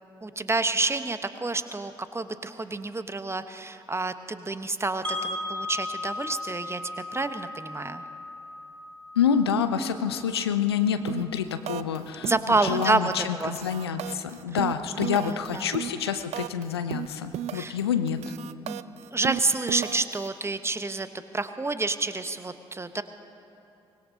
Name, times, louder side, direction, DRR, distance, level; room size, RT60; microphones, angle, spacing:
voice 1, 0.2-6.8 7.1-8.0 12.2-13.5 15.0-15.7 17.5-17.8 18.7-18.9 19.1-21.1 21.3-23.0, right 3 dB, 20° right, 10 dB, 1.0 m, -28 dB
Wind chime, 5.0-11.0, left 2 dB, 90° right, 1.8 m, -37 dB
voice 2, 9.2-18.3, left 7 dB, 85° left, 10 dB, 0.6 m, -27 dB
sound 1, 11.1-11.4 11.7-12.0 12.2-13.1 13.4-16.6 16.9-17.8 18.1-20.3, right 11 dB, 55° right, 0.5 m, -34 dB
24.5 x 20.0 x 2.8 m, 2.8 s
figure-of-eight pair, 40°, 13 cm